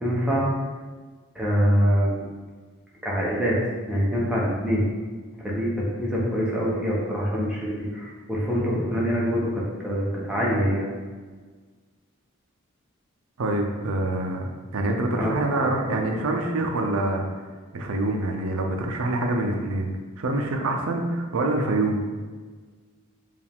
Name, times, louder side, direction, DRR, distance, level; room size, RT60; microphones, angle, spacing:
voice 1, 0.0-0.5 1.3-2.3 3.0-3.6 3.9-4.8 5.4-10.9 15.2-16.0, equal, 5° right, -6 dB, 0.8 m, -25 dB
voice 2, 13.4-17.2 17.7-22.0, right 2 dB, 85° right, 3 dB, 0.5 m, -26 dB
4.6 x 2.5 x 3.5 m, 1.4 s
head